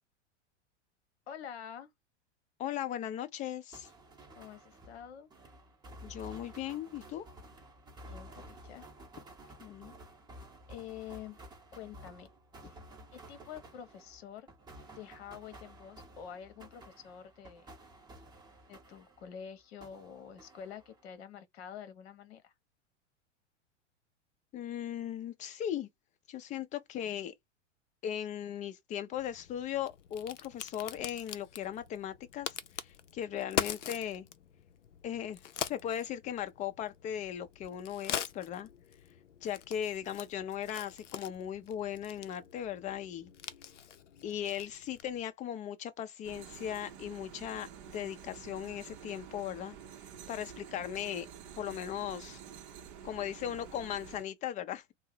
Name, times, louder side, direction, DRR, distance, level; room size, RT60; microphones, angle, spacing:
voice 1, 1.3-1.9 4.4-5.3 8.1-8.9 10.7-11.4 11.7-12.3 12.6-12.8 13.1-14.5 15.0-17.7 18.7-22.5, left 8 dB, 55° left, 0.9 m, -47 dB
voice 2, 2.6-3.9 6.0-7.3 9.6-9.9 24.5-25.9 26.3-27.3 28.0-32.6 32.8-34.3 35.0-38.7 39.4-43.3 44.2-49.8 50.3-51.3 51.6-52.4 53.0-54.9, left 10 dB, 20° left, 0.5 m, -38 dB
sound 1, 3.7-19.5 19.8-21.2, right 1 dB, 10° right, 0.9 m, -53 dB
Crack, 29.1-45.2, left 9 dB, 75° left, 0.5 m, -43 dB
sound 2, 46.2-54.2, right 8 dB, 40° right, 0.6 m, -49 dB
2.7 x 2.0 x 3.8 m
figure-of-eight pair, 95°, 36 cm